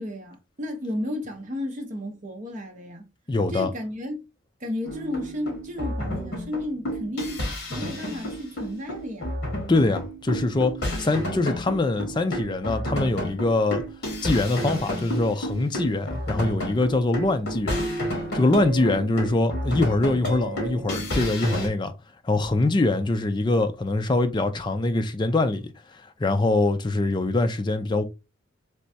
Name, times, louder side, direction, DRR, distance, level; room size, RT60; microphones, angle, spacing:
voice 1, 0.0-3.0 3.5-4.3 4.6-7.4 7.7-9.3 18.8-19.0, left 1 dB, 40° right, 0.9 m, -33 dB
voice 2, 3.3-3.7 9.7-13.8 14.2-17.8 18.3-21.9 22.2-25.7 26.2-28.0, left 2 dB, 20° left, 0.4 m, -23 dB
sound 1, 4.8-21.7, equal, 55° left, 1.7 m, -31 dB
3.3 x 3.0 x 2.7 m
head